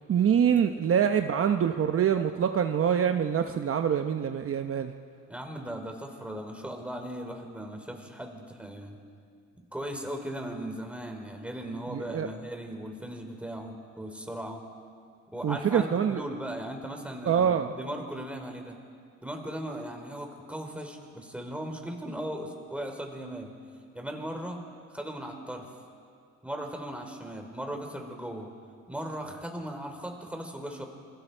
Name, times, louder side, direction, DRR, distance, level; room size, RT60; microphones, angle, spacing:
voice 1, 0.1-4.9 11.9-12.3 15.4-16.2 17.2-17.7, right 8 dB, 50° right, 6 dB, 0.9 m, -25 dB
voice 2, 5.3-9.0 9.7-14.6 15.3-18.8 19.2-23.5 23.9-24.6 24.9-25.7 26.4-28.5 28.9-30.8, right 1 dB, 5° right, 3 dB, 3.5 m, -38 dB
28.0 x 22.5 x 4.5 m, 2.2 s
cardioid pair, 90°, 30 cm